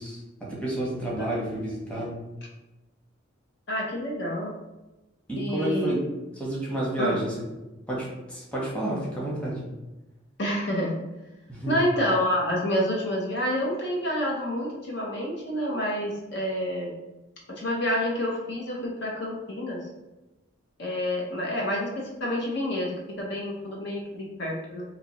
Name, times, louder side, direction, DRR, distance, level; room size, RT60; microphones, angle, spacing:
voice 1, 0.0-2.2 5.3-6.0 6.4-7.3 7.9-9.6 11.5-11.9, right 1 dB, 5° left, -6 dB, 1.0 m, -30 dB
voice 2, 3.7-4.5 5.4-5.9 7.0-7.2 10.4-11.0 11.7-16.9 17.6-19.8 20.8-24.8, equal, 60° left, -2 dB, 0.7 m, -28 dB
4.0 x 2.7 x 2.9 m, 1.0 s
head